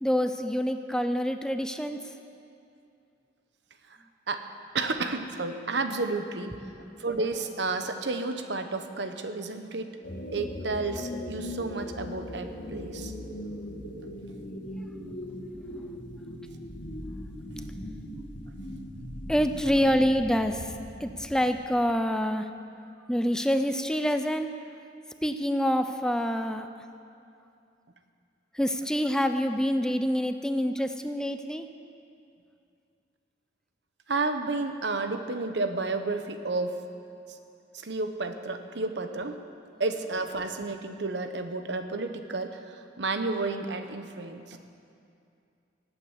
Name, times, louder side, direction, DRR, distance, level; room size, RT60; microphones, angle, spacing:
voice 1, 0.0-2.0 6.6-6.7 15.2-16.0 17.7-17.9 19.3-22.5 23.1-24.5 25.2-26.7 28.5-31.7, equal, 5° left, 8 dB, 0.5 m, -27 dB
voice 2, 4.7-9.9 10.3-13.1 34.1-36.8 37.7-39.4 39.8-44.6, right 3 dB, 70° right, 7 dB, 1.1 m, -31 dB
sound 1, 10.0-21.6, equal, 90° left, 2.4 m, -39 dB
18.0 x 9.1 x 8.2 m, 2.5 s
head